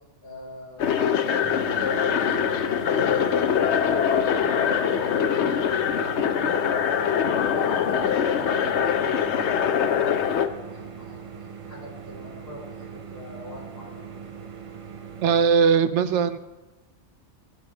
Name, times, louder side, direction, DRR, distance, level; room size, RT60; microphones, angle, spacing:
voice 1, 0.2-1.0 1.3-4.0 4.4-6.8 7.2-14.2, left 1 dB, 55° left, -4 dB, 5.1 m, -42 dB
sound 1, 0.8-10.5, left 8 dB, 70° left, 0.9 m, -23 dB
sound 2, 1.4-15.4, right 7 dB, 35° right, 0.7 m, -41 dB
voice 2, 15.2-16.4, right 6 dB, 80° right, 12 dB, 1.0 m, -20 dB
17.5 x 7.9 x 3.9 m, 1.2 s
omnidirectional pair, 1.2 m